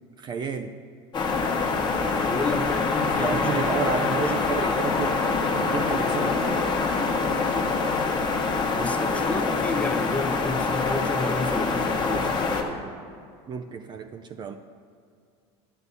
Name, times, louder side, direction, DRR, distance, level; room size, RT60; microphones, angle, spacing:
voice 1, 0.2-0.8 3.0-6.7 13.5-14.6, right 6 dB, 30° right, 7 dB, 0.4 m, -31 dB
sound 1, 1.1-12.6, left 4 dB, 30° left, 1.2 m, -25 dB
voice 2, 2.0-4.7 8.7-12.5, left 2 dB, 10° left, 6 dB, 0.7 m, -31 dB
11.0 x 6.8 x 4.1 m, 2.3 s
hypercardioid pair, 95°, 14 cm